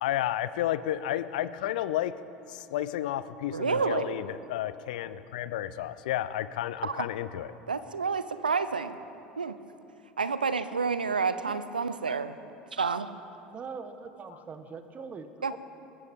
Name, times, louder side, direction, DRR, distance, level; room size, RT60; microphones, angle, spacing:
voice 1, 0.0-2.2 2.5-7.5, left 12 dB, 70° left, 15 dB, 0.5 m, -31 dB
voice 2, 3.5-4.2 6.8-7.1 7.7-9.0 9.4-9.6 10.2-12.4 12.7-13.1 15.4-15.5, right 5 dB, 90° right, 13 dB, 0.5 m, -29 dB
voice 3, 11.3-11.6 13.5-15.6, right 5 dB, 35° right, 9 dB, 1.2 m, -42 dB
22.0 x 13.0 x 3.6 m, 2.8 s
figure-of-eight pair, 70°, 5 cm